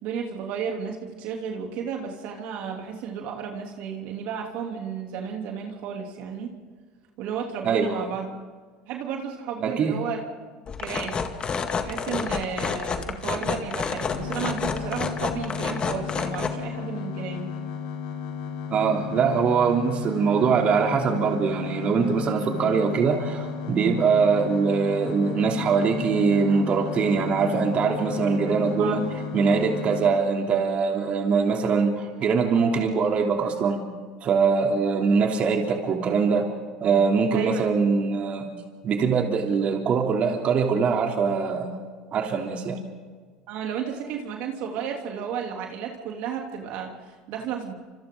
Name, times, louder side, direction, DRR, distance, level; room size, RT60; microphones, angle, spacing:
voice 1, 0.0-6.5 7.2-8.3 8.9-10.2 10.8-11.3 11.8-17.5 28.8-29.0 37.3-37.7 43.5-47.7, right 7 dB, 65° right, 1 dB, 3.2 m, -33 dB
voice 2, 7.6-8.1 9.6-10.0 18.7-29.0 29.3-33.8 34.2-36.5 36.8-38.5 38.8-41.7 42.1-42.8, right 5 dB, 45° right, 1 dB, 3.3 m, -22 dB
sound 1, 10.7-16.5, left 5 dB, 35° left, 2.0 m, -29 dB
sound 2, 14.1-30.1, left 7 dB, 70° left, 4.4 m, -34 dB
29.5 x 27.0 x 3.9 m, 1.5 s
hypercardioid pair, 85°, 3 cm